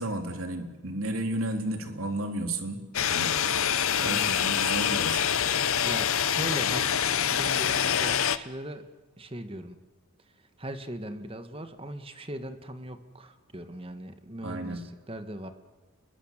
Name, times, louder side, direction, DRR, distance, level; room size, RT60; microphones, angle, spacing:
voice 1, 0.0-2.8 3.1-3.4 4.0-5.2 14.4-14.8, right 1 dB, 70° right, 5 dB, 3.5 m, -32 dB
sound 1, 2.9-8.4, left 8 dB, 75° left, 1.0 m, -25 dB
voice 2, 4.0-4.4 5.8-8.8 9.2-9.8 10.3-15.5, right 1 dB, 25° right, 9 dB, 1.7 m, -39 dB
28.5 x 22.5 x 7.5 m, 1.2 s
head